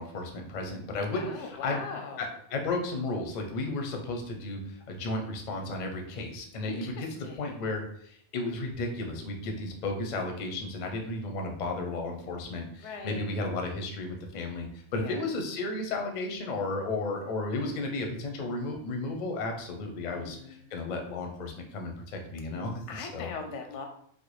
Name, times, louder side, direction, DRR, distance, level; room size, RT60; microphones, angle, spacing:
voice 1, 0.0-1.8 2.2-23.3, left 2 dB, 50° left, 3 dB, 0.5 m, -34 dB
voice 2, 1.2-2.3 6.6-7.6 12.8-13.3 15.0-15.2 20.1-20.8 22.9-23.9, left 5 dB, 90° left, 4 dB, 0.9 m, -41 dB
3.5 x 2.1 x 3.1 m, 0.65 s
omnidirectional pair, 1.2 m